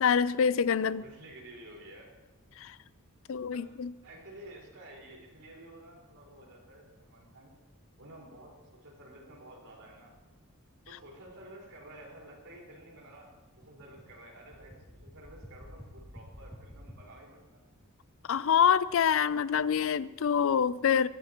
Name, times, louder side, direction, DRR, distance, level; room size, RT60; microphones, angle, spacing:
voice 1, 0.0-1.0 2.6-2.7 3.3-3.9 18.3-21.1, left 7 dB, 65° left, 18 dB, 0.4 m, -26 dB
voice 2, 0.8-2.2 3.5-3.6 4.0-7.6 8.0-10.2 10.8-17.6 21.0-21.1, right 1 dB, 80° right, -3 dB, 4.7 m, -51 dB
sound 1, 10.4-16.9, equal, ahead, 2.4 m, -51 dB
21.0 x 14.0 x 3.0 m, 1.1 s
head